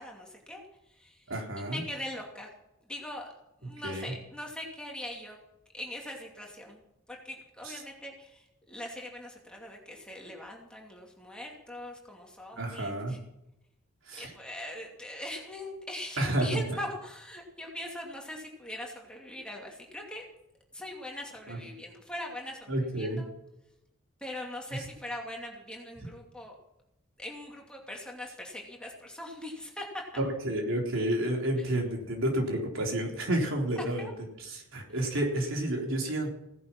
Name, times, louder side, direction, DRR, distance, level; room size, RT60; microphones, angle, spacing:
voice 1, 0.0-1.3 1.6-2.5 2.9-3.3 3.6-5.4 5.7-6.8 7.1-13.2 14.2-20.3 20.7-23.3 24.2-26.6 27.2-29.9 33.8-34.1, left 1 dB, 5° left, -1 dB, 2.5 m, -41 dB
voice 2, 1.3-1.8 3.8-4.1 7.6-7.8 12.6-13.1 14.1-14.3 16.2-16.8 21.5-21.6 22.7-23.2 30.2-34.1 34.4-36.3, right 1 dB, 70° right, 1 dB, 3.8 m, -30 dB
17.0 x 11.0 x 5.9 m, 0.87 s
head